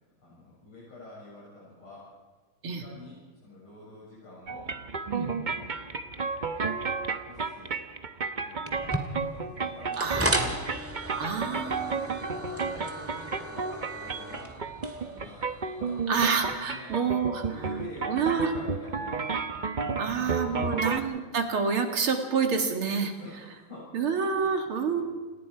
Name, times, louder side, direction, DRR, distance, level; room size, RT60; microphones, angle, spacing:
voice 1, 0.2-2.1 2.6-4.7 5.1-5.7 7.1-7.8 8.4-10.6 11.4-14.6 14.9-19.3 19.8-21.1 23.2-25.0, left 1 dB, 75° left, -8 dB, 8.1 m, -48 dB
sound 1, 4.5-21.0, right 4 dB, 40° right, 0.6 m, -32 dB
sound 2, 8.7-16.6, right 1 dB, 5° right, 1.9 m, -35 dB
voice 2, 10.0-10.3 11.2-11.9 16.1-17.4 18.1-18.5 20.0-23.1 23.9-25.0, right 6 dB, 75° right, 5 dB, 3.0 m, -28 dB
28.5 x 19.5 x 4.9 m, 1.3 s
omnidirectional pair, 2.4 m